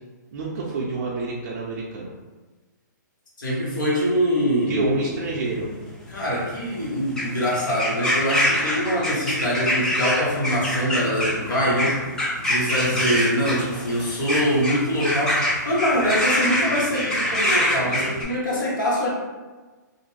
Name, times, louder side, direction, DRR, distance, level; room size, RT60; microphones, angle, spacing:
voice 1, 0.3-2.1 4.7-5.7 12.7-13.1, right 2 dB, 50° right, -4 dB, 0.5 m, -28 dB
voice 2, 3.4-5.1 6.1-12.1 12.4-19.1, equal, 90° left, -5 dB, 1.1 m, -24 dB
sound 1, 4.8-18.2, left 1 dB, 5° left, 0.4 m, -25 dB
2.5 x 2.1 x 3.1 m, 1.3 s
hypercardioid pair, 145°, 10 cm